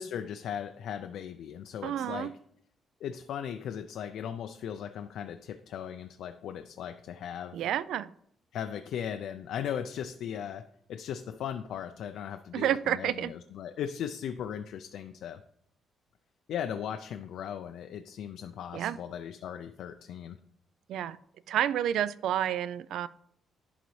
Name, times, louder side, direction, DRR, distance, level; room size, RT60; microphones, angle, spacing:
voice 1, 0.0-2.3 3.0-7.6 8.5-15.4 16.5-20.4, left 9 dB, 75° left, 8 dB, 0.4 m, -38 dB
voice 2, 1.8-2.3 7.5-8.1 12.5-13.3 18.7-19.0 20.9-21.2 21.5-23.1, right 11 dB, 75° right, 17 dB, 0.3 m, -30 dB
11.0 x 3.9 x 3.2 m, 0.68 s
cardioid pair, 125°, 0 cm